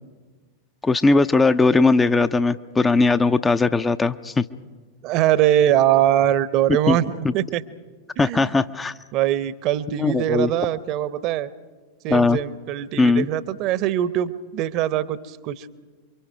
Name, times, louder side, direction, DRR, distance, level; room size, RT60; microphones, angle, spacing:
voice 1, 0.8-4.4 6.9-7.0 8.2-8.9 10.0-10.5 12.1-12.4 13.0-13.3, left 3 dB, 15° left, 11 dB, 0.6 m, -19 dB
voice 2, 5.0-7.6 8.2-8.5 9.1-11.5 12.0-15.7, right 12 dB, 40° right, 16 dB, 0.9 m, -22 dB
28.0 x 24.0 x 4.8 m, 1.4 s
figure-of-eight pair, 90°, 0 cm